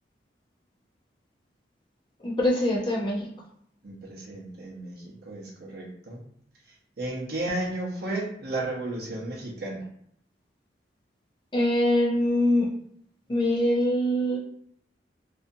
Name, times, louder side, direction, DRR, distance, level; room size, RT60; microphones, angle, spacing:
voice 1, 2.2-3.3 11.5-12.7 13.3-14.4, left 1 dB, 25° left, -4 dB, 0.6 m, -23 dB
voice 2, 3.8-6.2 7.0-9.9, right 2 dB, 60° right, -3 dB, 0.7 m, -33 dB
2.7 x 2.3 x 2.6 m, 0.68 s
head